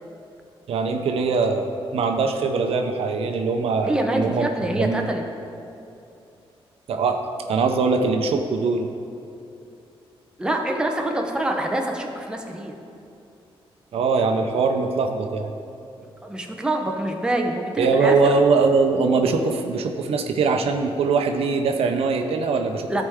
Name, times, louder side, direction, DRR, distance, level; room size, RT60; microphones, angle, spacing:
voice 1, 0.7-4.5 4.8-5.1 6.9-8.9 13.9-15.5 17.8-23.0, right 4 dB, 80° right, 5 dB, 0.6 m, -22 dB
voice 2, 3.9-5.2 10.4-12.8 16.0-18.2 22.9-23.0, right 1 dB, 10° right, 2 dB, 0.8 m, -25 dB
14.0 x 4.7 x 3.6 m, 2.7 s
wide cardioid pair, 125°, 10 cm